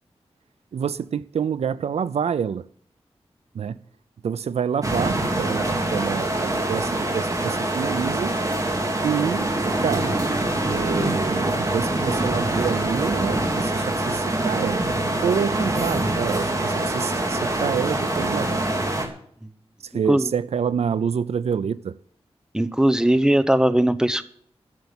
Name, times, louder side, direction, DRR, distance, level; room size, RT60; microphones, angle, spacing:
voice 1, 0.7-2.6 3.5-3.8 4.2-8.3 9.0-10.2 10.6-14.8 15.2-18.7 19.8-22.0, right 7 dB, 90° right, 0.5 m, -27 dB
sound 1, 4.8-19.1, right 1 dB, 30° right, 3.0 m, -24 dB
voice 2, 22.5-24.2, right 1 dB, 5° right, 1.0 m, -19 dB
12.0 x 7.0 x 9.7 m
wide cardioid pair, 70°, 11 cm